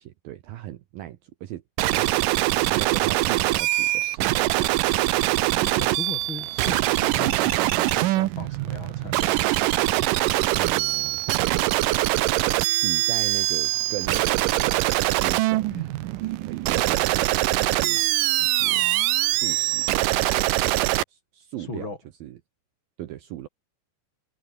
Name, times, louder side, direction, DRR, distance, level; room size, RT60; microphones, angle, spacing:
voice 1, 0.0-1.6 1.9-2.1 2.5-5.0 10.6-11.2 12.6-14.9 15.2-15.7 16.0-18.1 18.4-20.2 21.1-21.9 22.2-22.4 23.0-23.5, right 13 dB, 70° right, 2.6 m, -38 dB
sound 1, 1.8-21.0, right 17 dB, 85° right, 1.9 m, -23 dB
voice 2, 5.5-9.5 15.7-15.9 21.6-22.0, left 3 dB, 30° left, 4.3 m, -38 dB
omnidirectional pair, 4.9 m